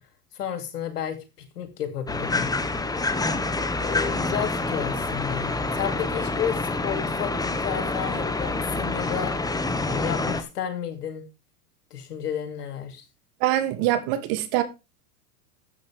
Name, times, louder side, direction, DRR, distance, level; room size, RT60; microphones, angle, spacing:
voice 1, 0.3-1.2 1.5-2.5 3.8-9.4 9.9-11.3 11.9-13.0, left 9 dB, 85° left, 2.8 m, -32 dB
sound 1, 2.1-10.4, left 3 dB, 10° left, 1.2 m, -27 dB
voice 2, 13.4-14.6, right 13 dB, 55° right, 2.5 m, -24 dB
13.0 x 8.5 x 3.5 m
hypercardioid pair, 105°, 46 cm